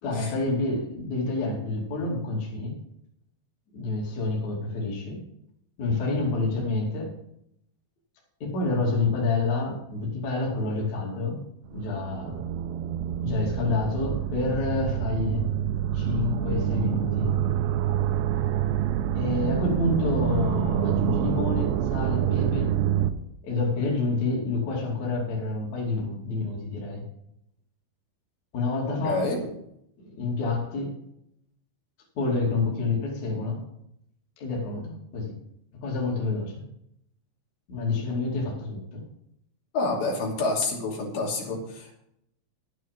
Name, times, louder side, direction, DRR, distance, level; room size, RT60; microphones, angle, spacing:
voice 1, 0.0-2.8 3.7-5.2 5.8-7.1 8.4-11.4 11.7-12.4 13.2-15.5 15.9-17.3 19.1-22.7 23.4-27.0 28.5-29.2 30.0-30.9 32.1-33.6 34.4-35.4 35.8-36.6 37.7-39.1, left 3 dB, 45° left, -2 dB, 3.2 m, -28 dB
sound 1, 11.7-23.1, right 10 dB, 90° right, 2.5 m, -27 dB
voice 2, 29.0-29.4 39.7-42.0, left 3 dB, 65° left, -3 dB, 4.8 m, -28 dB
11.0 x 9.3 x 5.2 m, 0.76 s
omnidirectional pair, 5.7 m